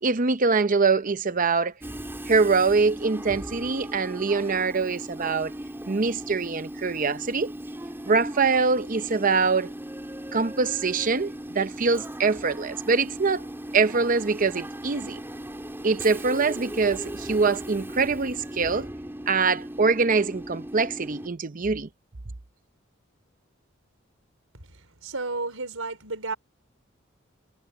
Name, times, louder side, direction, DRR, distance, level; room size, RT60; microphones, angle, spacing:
voice 1, 0.0-1.7 2.3-5.5 5.9-7.5 8.1-9.7 10.3-13.4 13.7-15.2 15.8-18.9 19.3-21.9, right 4 dB, 40° right, 0.7 m, -24 dB
Train / Subway metro underground, 1.8-21.3, right 1 dB, 10° right, 3.2 m, -38 dB
voice 2, 25.0-26.4, right 3 dB, 85° right, 5.2 m, -32 dB
head